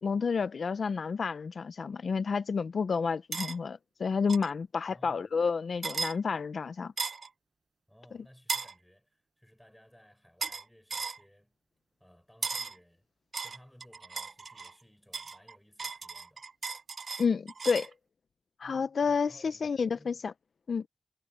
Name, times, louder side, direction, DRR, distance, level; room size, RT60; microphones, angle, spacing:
voice 1, 0.0-6.9 17.2-17.9 18.6-20.3 20.7-20.9, left 5 dB, 75° left, 0.4 m, -30 dB
sound 1, 3.3-3.6 4.3-4.5 5.8-6.2 7.0-7.3 8.5-8.7 10.4-10.6 10.9-11.2 12.4-12.8 13.3-14.7 15.1-17.9, right 4 dB, 55° right, 0.5 m, -36 dB
voice 2, 4.9-5.3 7.9-11.6 12.0-13.1 13.4-16.5 18.6-20.2, equal, 5° left, 6.1 m, -59 dB
wide cardioid pair, 135°, 0 cm